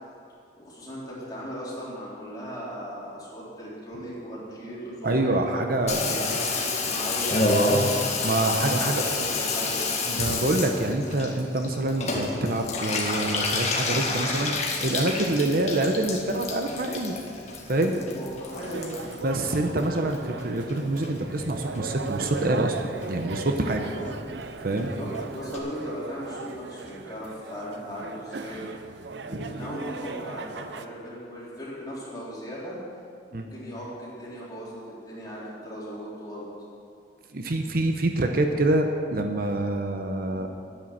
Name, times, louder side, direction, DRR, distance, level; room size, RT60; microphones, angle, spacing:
voice 1, 0.6-7.6 8.6-9.8 15.0-15.3 17.9-19.0 23.7-24.1 24.8-28.6 29.2-32.8 33.3-36.5, equal, 20° left, -7 dB, 3.8 m, -38 dB
voice 2, 5.0-6.2 8.2-9.0 10.1-14.5 14.8-17.2 17.7-18.0 19.2-23.9 24.6-24.9 29.3-29.5 33.3-33.5 37.3-40.5, right 2 dB, 55° right, 4 dB, 0.9 m, -26 dB
Water tap faucet / Bathtub (filling or washing), 5.9-20.4 20.7-21.4 21.8-21.9 22.1-22.2 22.4-22.8 23.0-23.1 23.4-23.5 23.7-23.8 24.1-24.2 24.4-24.5 24.8-24.9 25.1-25.2 25.5-25.6, left 3 dB, 40° left, 1.8 m, -29 dB
sound 1, 18.5-30.9, right 4 dB, 75° right, 0.6 m, -38 dB
10.5 x 9.7 x 7.4 m, 2.4 s
head